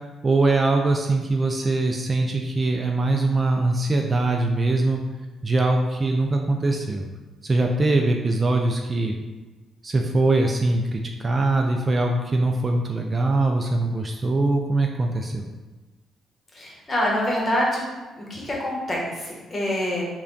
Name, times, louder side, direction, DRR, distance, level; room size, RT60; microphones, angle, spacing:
voice 1, 0.2-5.0 5.4-7.1 7.4-9.2 9.8-15.4, right 2 dB, 30° right, 2 dB, 0.3 m, -22 dB
voice 2, 16.5-17.8 18.2-20.1, left 1 dB, 25° left, -4 dB, 1.1 m, -26 dB
3.3 x 2.2 x 3.8 m, 1.2 s
cardioid pair, 90°, 0 cm